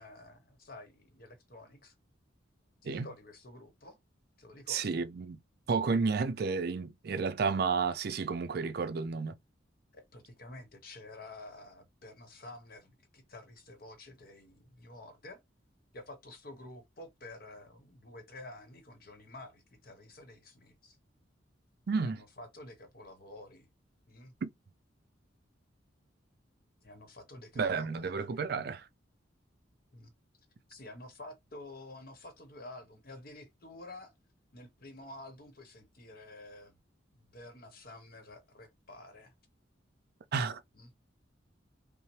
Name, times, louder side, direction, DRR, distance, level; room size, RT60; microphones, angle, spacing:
voice 1, 0.0-1.9 2.8-4.0 4.4-5.0 9.9-15.4 15.9-21.0 22.0-23.7 24.1-24.3 26.8-28.4 29.9-30.1 30.7-34.1 34.5-36.8 37.1-39.3 40.7-40.9, left 2 dB, 50° left, 1.1 m, -50 dB
voice 2, 4.7-5.4 5.7-9.4 21.9-22.2 24.4-24.5 27.6-28.8 40.3-40.6, right 5 dB, 55° right, 0.4 m, -31 dB
5.6 x 2.1 x 3.1 m
head